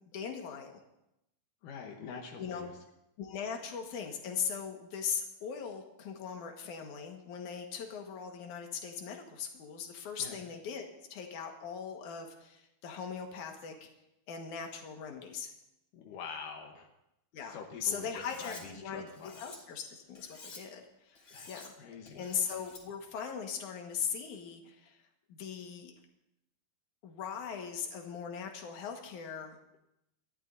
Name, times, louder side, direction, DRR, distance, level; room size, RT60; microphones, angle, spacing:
voice 1, 0.1-0.8 2.4-2.6 3.2-10.9 11.1-13.9 14.3-15.5 17.3-21.7 22.1-25.0 25.3-25.9 27.0-29.6, left 7 dB, 60° left, 3 dB, 2.3 m, -39 dB
voice 2, 1.6-2.7 10.2-10.4 15.9-16.9 17.4-19.6 21.3-22.3, left 5 dB, 75° left, 1 dB, 1.9 m, -46 dB
Cutlery silverware, 18.2-18.6 19.1-19.6 20.1-20.6 21.1-21.7 22.1-22.8, left 3 dB, 30° left, 3.2 m, -51 dB
28.5 x 13.0 x 2.7 m, 0.85 s
omnidirectional pair, 5.4 m